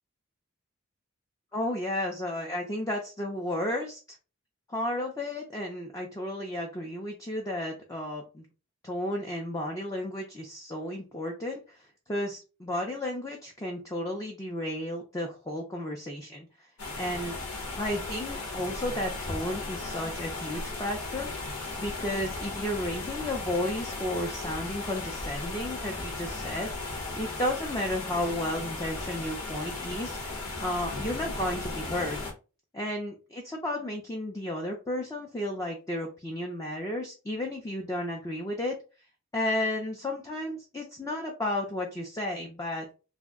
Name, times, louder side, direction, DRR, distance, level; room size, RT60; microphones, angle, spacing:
voice 1, 1.5-4.0 4.7-8.5 8.8-16.7 17.0-17.4 17.8-26.7 27.1-32.2 32.7-38.7 39.3-42.9, left 1 dB, 15° left, 0 dB, 0.4 m, -33 dB
sound 1, 16.8-32.3, left 3 dB, 90° left, 1.0 m, -36 dB
2.5 x 2.0 x 3.5 m, 0.32 s
head